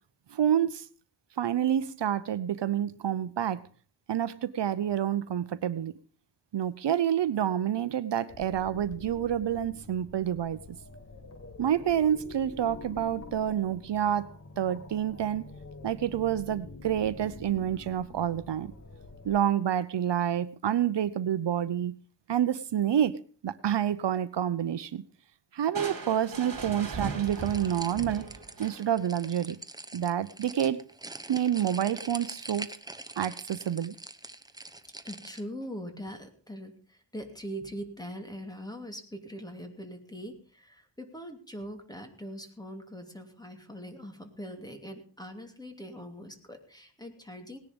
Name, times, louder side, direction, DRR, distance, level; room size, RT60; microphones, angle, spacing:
voice 1, 0.3-0.9 1.4-3.6 4.1-5.9 6.5-10.6 11.6-14.3 14.6-15.5 15.8-18.7 19.2-22.0 22.3-25.0 25.5-28.3 28.6-29.6 29.9-30.8 31.3-32.7 33.2-33.9, right 10 dB, 70° right, 14 dB, 0.8 m, -28 dB
sound 1, 8.3-19.4, left 3 dB, 35° left, 1.4 m, -47 dB
Crushing, 25.7-29.1, right 4 dB, 50° right, 3.0 m, -38 dB
sound 2, 27.2-35.4, right 2 dB, 10° right, 1.0 m, -44 dB
voice 2, 35.0-47.6, equal, 10° left, 5 dB, 2.8 m, -42 dB
18.5 x 10.5 x 5.2 m, 0.41 s
wide cardioid pair, 115°, 44 cm